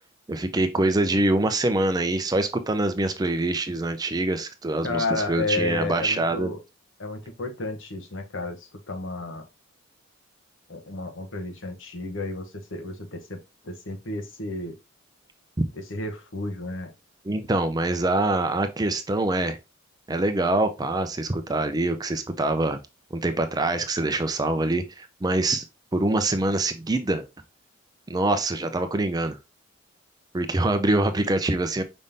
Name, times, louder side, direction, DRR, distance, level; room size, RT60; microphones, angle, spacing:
voice 1, 0.3-6.5 17.2-19.6 20.1-22.8 23.1-25.7 25.9-27.2 28.1-29.4 30.3-31.8, right 2 dB, 20° right, 0.4 m, -24 dB
voice 2, 4.8-6.6 7.0-9.4 10.7-13.4 13.6-14.7 15.9-16.9, left 3 dB, 65° left, 1.0 m, -32 dB
5.2 x 3.6 x 2.7 m
head